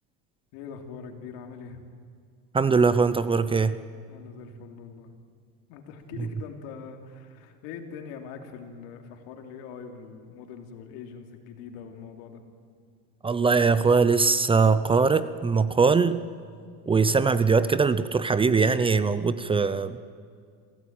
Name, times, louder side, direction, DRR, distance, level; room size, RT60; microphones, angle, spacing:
voice 1, 0.5-1.8 4.1-5.2 5.7-12.4, left 6 dB, 75° left, 4 dB, 3.2 m, -42 dB
voice 2, 2.5-3.8 13.2-16.2 16.9-20.0, right 4 dB, 15° right, 14 dB, 0.6 m, -21 dB
26.5 x 16.5 x 9.0 m, 2.2 s
cardioid pair, 135°, 34 cm